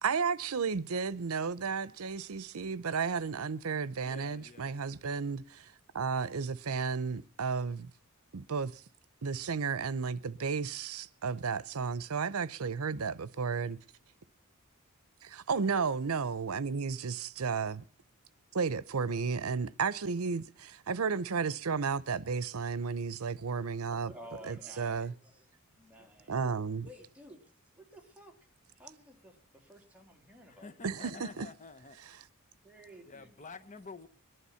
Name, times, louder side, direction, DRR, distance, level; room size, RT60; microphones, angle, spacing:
voice 1, 0.0-5.7 5.9-7.9 8.3-8.8 9.2-13.8 15.2-17.8 18.5-24.1 24.4-25.1 26.3-26.9 30.8-31.5, right 5 dB, 80° right, 0.7 m, -33 dB
voice 2, 4.0-4.8 13.7-13.8 15.5-15.7 30.5-32.0 33.0-34.1, left 4 dB, 35° left, 1.0 m, -49 dB
voice 3, 23.6-26.5 26.8-28.4 28.7-31.1 32.6-33.3, equal, 5° right, 3.0 m, -54 dB
21.5 x 11.0 x 5.7 m
head